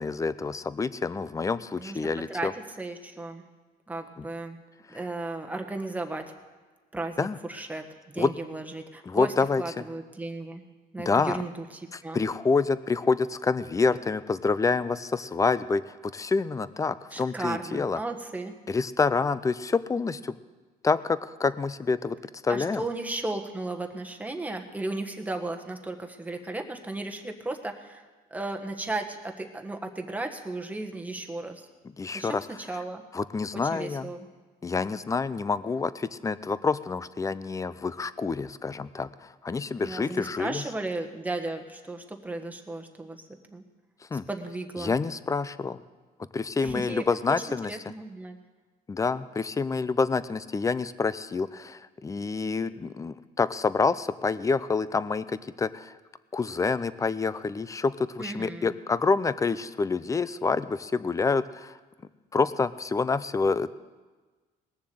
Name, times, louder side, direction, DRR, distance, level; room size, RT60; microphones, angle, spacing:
voice 1, 0.0-2.5 7.2-7.4 8.2-8.3 9.0-9.8 11.1-11.4 11.9-18.0 18.7-20.3 20.8-22.2 22.4-22.8 32.0-32.5 33.1-34.1 34.6-40.6 44.1-44.3 44.8-45.8 46.3-47.8 48.9-55.9 56.3-61.7 62.3-63.7, left 4 dB, 20° left, 15 dB, 0.5 m, -27 dB
voice 2, 2.8-3.4 3.9-4.6 4.9-6.3 6.9-10.6 10.9-12.2 17.1-18.5 22.5-28.0 28.3-31.7 32.1-33.0 33.5-34.3 39.8-43.2 43.5-43.6 44.3-44.9 46.6-47.0 47.7-48.4 58.2-58.7, right 2 dB, 10° right, 4 dB, 1.4 m, -35 dB
19.5 x 7.1 x 7.8 m, 1.3 s
cardioid pair, 110°, 17 cm